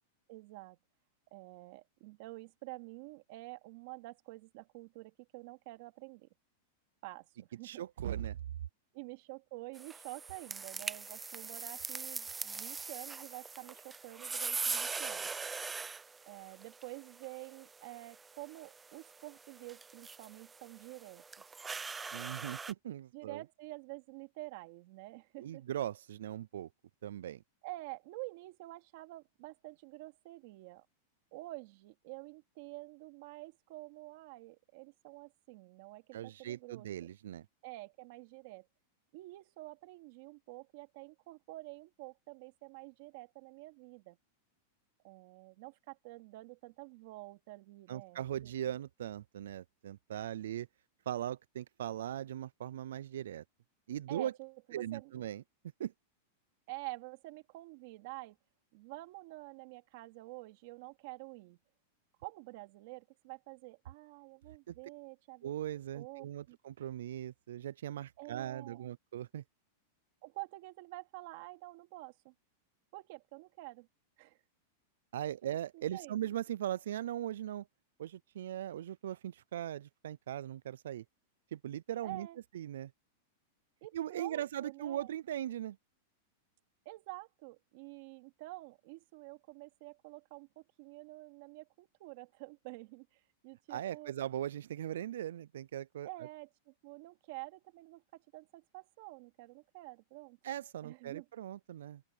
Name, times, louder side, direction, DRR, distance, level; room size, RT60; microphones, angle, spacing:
voice 1, 0.3-0.8 1.3-6.3 7.0-7.8 8.9-15.3 16.3-21.2 23.1-25.6 27.6-30.9 31.3-36.9 37.6-38.7 39.1-44.2 45.0-48.5 54.1-55.1 56.7-58.4 58.7-61.6 62.2-65.5 65.9-66.6 68.2-68.9 70.2-72.3 72.9-73.9 74.2-74.4 75.7-76.2 82.0-82.4 83.8-85.1 86.8-94.1 96.0-100.4 100.8-101.3, right 21 dB, 40° right, 2.5 m, -48 dB
voice 2, 7.6-8.4 22.1-23.4 25.4-26.7 27.0-27.4 36.1-37.5 47.9-50.7 51.1-53.4 53.9-54.3 54.7-55.4 55.8-55.9 64.7-64.8 65.4-69.4 75.1-77.7 78.0-81.0 81.5-82.3 82.5-82.9 83.9-85.8 93.7-96.1 100.4-102.0, right 11 dB, 85° right, 0.3 m, -39 dB
sound 1, 9.8-22.7, right 4 dB, 10° right, 0.5 m, -42 dB
open air
supercardioid pair, 180°, 0 cm